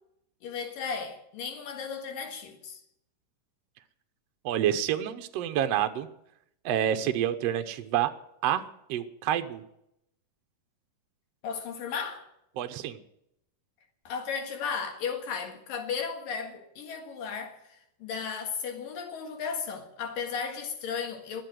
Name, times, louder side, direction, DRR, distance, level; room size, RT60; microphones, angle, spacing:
voice 1, 0.4-2.8 11.4-12.3 14.1-21.4, left 6 dB, 80° left, 3.4 m, -35 dB
voice 2, 4.4-6.1 6.6-8.1 8.4-8.6 8.9-9.6 12.6-13.0, right 10 dB, 75° right, 1.4 m, -28 dB
21.5 x 7.6 x 7.7 m
omnidirectional pair, 4.0 m